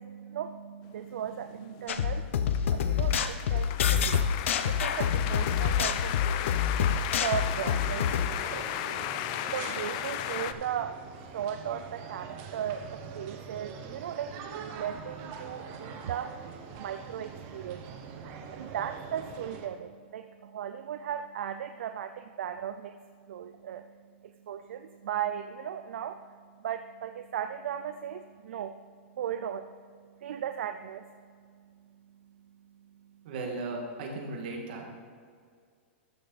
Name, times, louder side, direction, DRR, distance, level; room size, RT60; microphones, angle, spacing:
voice 1, 0.0-4.2 4.6-6.6 6.9-9.2 9.5-16.4 16.7-17.9 18.5-23.0 23.3-23.9 24.2-28.8 29.2-29.7 30.2-31.1, right 9 dB, 75° right, 9 dB, 0.4 m, -37 dB
sound 1, 1.3-10.5, left 12 dB, 35° left, 0.4 m, -35 dB
sound 2, 1.9-8.3, left 8 dB, 75° left, 0.7 m, -27 dB
sound 3, 7.3-19.7, right 6 dB, 30° right, 0.9 m, -44 dB
voice 2, 33.2-34.9, right 2 dB, 55° right, 0 dB, 2.1 m, -36 dB
13.0 x 6.6 x 4.1 m, 2.1 s
supercardioid pair, 165°, 7 cm